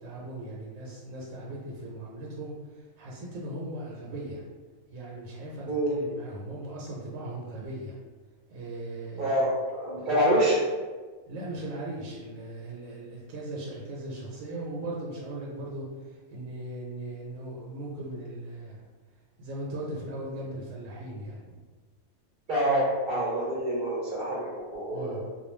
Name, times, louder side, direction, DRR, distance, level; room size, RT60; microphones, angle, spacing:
voice 1, 0.0-2.5 3.0-4.4 4.9-8.0 8.5-9.4 10.0-10.2 11.3-18.8 19.4-21.6 24.9-25.3, right 1 dB, 85° right, -4 dB, 1.0 m, -38 dB
voice 2, 9.2-10.6 22.5-25.3, right 1 dB, 55° right, -7 dB, 0.6 m, -26 dB
2.3 x 2.2 x 3.1 m, 1.4 s
omnidirectional pair, 1.4 m